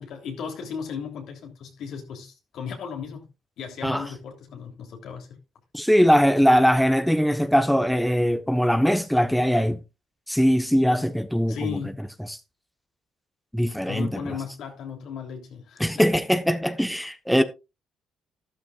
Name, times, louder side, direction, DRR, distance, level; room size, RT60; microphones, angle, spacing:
voice 1, 0.0-3.2 3.6-5.4 11.5-12.0 13.8-16.1, left 7 dB, 75° left, 3.3 m, -36 dB
voice 2, 5.7-9.8 10.3-11.7 12.3-12.4 13.5-14.2 15.8-17.4, equal, ahead, 1.0 m, -21 dB
12.5 x 12.5 x 2.5 m
supercardioid pair, 70°, 0 cm